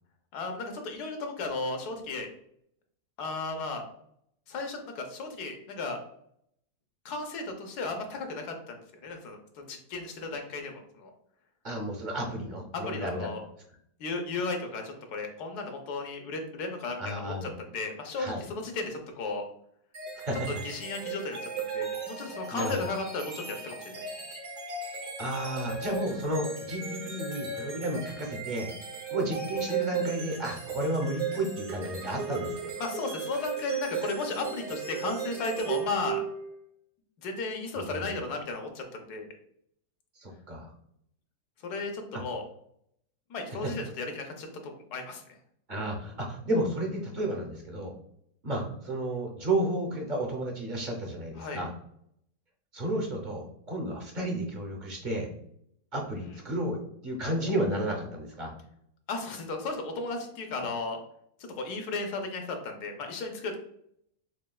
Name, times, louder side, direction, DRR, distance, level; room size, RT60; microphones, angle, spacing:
voice 1, 0.3-2.3 3.2-3.8 4.5-6.0 7.0-11.1 12.7-13.4 14.0-19.4 20.5-24.0 32.8-36.2 37.2-39.3 41.6-42.4 43.3-45.4 51.4-51.6 56.2-56.4 59.1-61.0 61.4-63.6, left 3 dB, 80° left, 4 dB, 1.3 m, -35 dB
voice 2, 11.6-13.3 17.0-17.5 18.2-18.4 20.2-20.5 22.5-22.9 25.2-28.7 29.1-32.7 37.9-38.1 40.2-40.7 45.7-47.9 48.4-51.7 52.7-55.3 55.9-56.8 57.0-58.5, right 1 dB, 40° right, 1 dB, 0.7 m, -32 dB
sound 1, 19.9-36.6, right 6 dB, 75° right, 1.5 m, -36 dB
6.3 x 2.3 x 2.3 m, 0.71 s
omnidirectional pair, 1.7 m